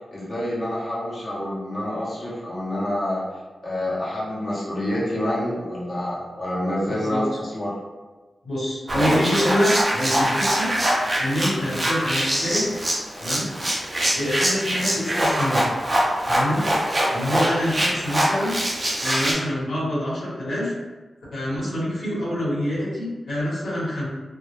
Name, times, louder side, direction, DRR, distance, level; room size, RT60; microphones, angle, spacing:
voice 1, 0.1-3.2 3.6-7.7, left 1 dB, 40° left, -8 dB, 0.7 m, -27 dB
voice 2, 6.9-7.2 8.4-10.7 11.2-12.7 13.2-13.5 14.1-15.6 16.3-16.7 17.1-18.5 19.0-20.7 21.3-24.1, equal, 90° left, -8 dB, 0.9 m, -26 dB
sound 1, 8.9-19.3, right 1 dB, 25° right, 0.5 m, -23 dB
2.1 x 2.0 x 2.9 m, 1.3 s
wide cardioid pair, 110°, 0 cm